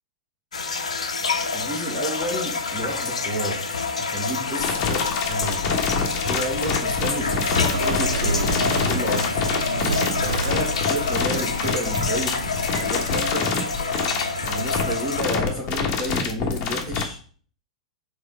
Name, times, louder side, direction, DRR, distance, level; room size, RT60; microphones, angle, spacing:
sound 1, 0.5-15.2, left 4 dB, 80° left, 1.0 m, -27 dB
voice 1, 1.5-3.7 4.0-5.9 6.2-9.4 10.2-12.4 12.7-13.5 14.5-17.2, equal, 15° right, -4 dB, 1.8 m, -31 dB
sound 2, 4.6-17.0, left 5 dB, 40° left, 1.3 m, -26 dB
Bird, 6.9-15.2, right 4 dB, 80° right, 0.7 m, -32 dB
5.1 x 3.9 x 5.0 m, 0.44 s
figure-of-eight pair, 100°, 3 cm